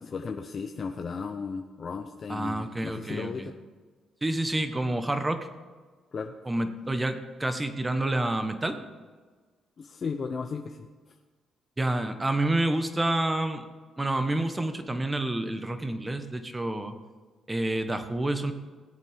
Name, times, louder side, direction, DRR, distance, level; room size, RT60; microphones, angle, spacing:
voice 1, 0.0-3.5 6.1-6.4 9.8-11.1, left 5 dB, 45° left, 4 dB, 0.7 m, -35 dB
voice 2, 2.3-3.5 4.2-5.5 6.4-8.8 11.8-13.6 14.0-16.9 17.5-18.5, right 1 dB, 15° right, 8 dB, 1.2 m, -28 dB
17.5 x 8.4 x 3.6 m, 1.4 s
cardioid pair, 90°, 0 cm